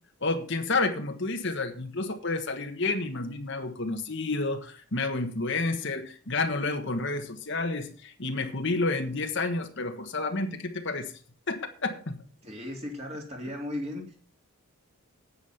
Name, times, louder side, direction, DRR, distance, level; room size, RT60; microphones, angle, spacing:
voice 1, 0.2-11.1 11.5-12.2, left 3 dB, 55° left, 6 dB, 1.5 m, -30 dB
voice 2, 12.4-14.1, left 1 dB, 30° right, 1 dB, 3.0 m, -36 dB
10.0 x 8.8 x 5.9 m, 0.42 s
head